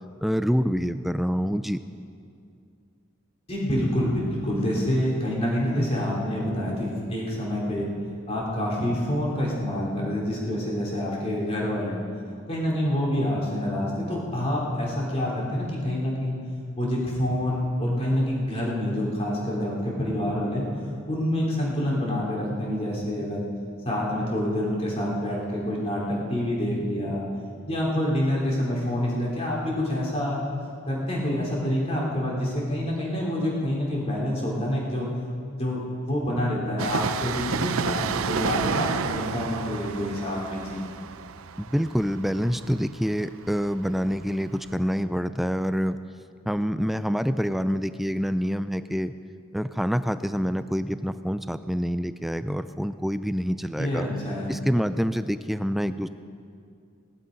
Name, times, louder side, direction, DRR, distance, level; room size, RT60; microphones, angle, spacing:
voice 1, 0.2-1.8 41.6-46.0 46.5-49.1 49.5-54.1 54.5-56.1, equal, ahead, 11 dB, 0.4 m, -26 dB
voice 2, 3.5-7.8 8.3-12.0 12.5-16.4 16.7-20.7 21.0-23.5 23.8-27.2 27.6-30.4 30.9-35.1 35.6-40.8 53.8-54.5, left 1 dB, 30° left, -4 dB, 3.3 m, -27 dB
Train, 36.8-44.2 44.5-44.6, right 6 dB, 80° right, 0.5 m, -31 dB
17.5 x 11.5 x 5.2 m, 2.4 s
head